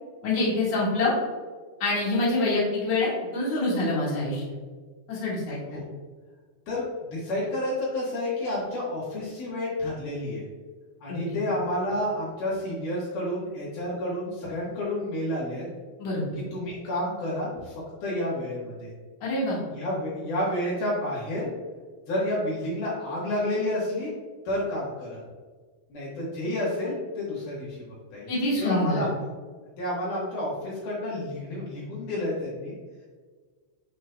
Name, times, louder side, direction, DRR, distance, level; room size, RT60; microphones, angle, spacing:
voice 1, 0.2-1.1 1.8-4.4 5.1-5.6 11.3-11.5 16.0-16.4 19.2-19.6 28.3-29.0, left 2 dB, 60° left, -6 dB, 1.7 m, -26 dB
voice 2, 7.1-10.4 11.0-15.7 16.5-18.9 19.7-21.5 22.1-24.1 24.5-25.2 25.9-28.3 28.6-29.1 29.8-32.8, left 1 dB, 90° left, -7 dB, 1.8 m, -30 dB
10.0 x 4.1 x 2.2 m, 1.5 s
omnidirectional pair, 5.9 m